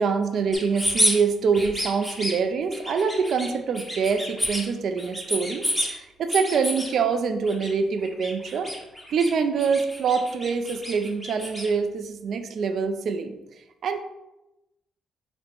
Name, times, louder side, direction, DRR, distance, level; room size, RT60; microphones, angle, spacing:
voice 1, 0.0-8.7 9.1-13.3 13.8-14.0, right 5 dB, 60° right, 8 dB, 0.3 m, -25 dB
sound 1, 0.5-1.1 1.5-2.3 2.7-3.5 3.7-4.6 5.0-5.9 6.3-6.9 7.4-7.7 8.0-9.3 9.6-11.7, equal, 5° left, 0.9 m, -29 dB
4.3 x 2.0 x 4.3 m, 0.95 s
cardioid pair, 90°, 0 cm